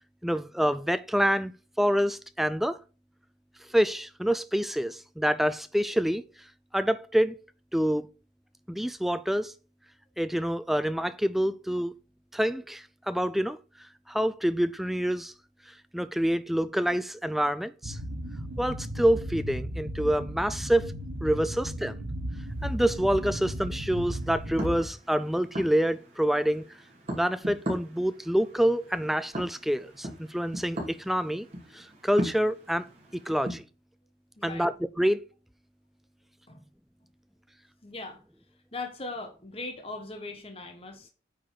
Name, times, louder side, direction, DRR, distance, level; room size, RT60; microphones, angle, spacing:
voice 1, 0.2-2.8 3.7-6.2 6.7-7.4 7.7-8.1 8.7-9.5 10.2-11.9 12.3-15.3 15.7-18.0 18.6-20.9 21.2-21.9 22.6-26.7 27.1-31.5 31.7-33.6 34.4-35.2, equal, ahead, 0.3 m, -27 dB
sound 1, 17.8-24.9, right 1 dB, 90° right, 1.5 m, -35 dB
sound 2, 22.5-33.6, equal, 35° right, 2.8 m, -40 dB
voice 2, 34.4-34.7 36.5-36.6 37.8-38.2 38.7-41.1, left 3 dB, 30° left, 1.1 m, -39 dB
9.1 x 4.1 x 4.7 m
head